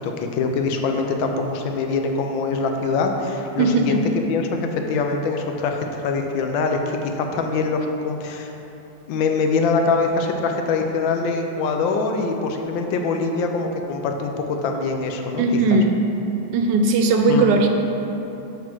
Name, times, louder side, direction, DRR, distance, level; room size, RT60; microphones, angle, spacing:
voice 1, 0.0-8.5 9.1-15.8 17.3-17.5, left 4 dB, 85° left, 4 dB, 1.4 m, -24 dB
voice 2, 3.6-4.0 15.4-16.0 16.5-17.7, right 3 dB, 75° right, 4 dB, 1.1 m, -18 dB
6.9 x 3.5 x 5.9 m, 3.0 s
omnidirectional pair, 2.1 m